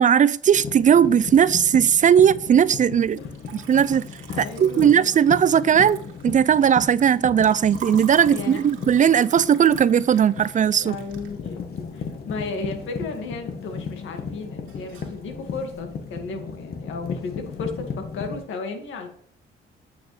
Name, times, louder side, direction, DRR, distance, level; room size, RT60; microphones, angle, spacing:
voice 1, 0.0-3.2 3.5-4.1 4.4-6.0 6.2-11.0, right 8 dB, 40° right, 0.4 m, -18 dB
sound 1, 0.5-18.4, left 5 dB, 50° left, 1.2 m, -36 dB
Liquid, 3.0-13.2 13.5-14.2 14.4-15.2, right 7 dB, 80° right, 2.1 m, -45 dB
voice 2, 4.3-5.1 8.3-8.6 10.8-11.6 11.9-19.1, left 3 dB, 80° left, 2.0 m, -34 dB
8.8 x 6.6 x 3.3 m
cardioid pair, 90°, 20 cm